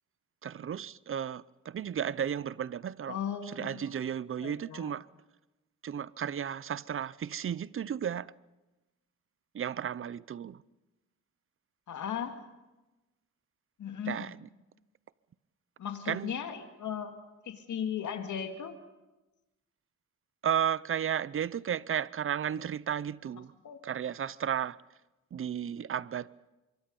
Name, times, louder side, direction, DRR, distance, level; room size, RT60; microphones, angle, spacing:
voice 1, 0.4-3.2 3.4-5.1 5.8-8.3 9.5-10.6 14.0-14.5 16.1-16.3 20.4-23.5 23.8-24.8 25.3-26.3, right 9 dB, 45° right, 0.7 m, -33 dB
voice 2, 3.1-3.9 4.4-4.9 11.9-12.4 13.8-14.3 15.8-17.2 17.4-18.8 23.6-23.8, left 8 dB, 75° left, 2.2 m, -37 dB
25.5 x 23.5 x 5.4 m
cardioid pair, 95°, 30 cm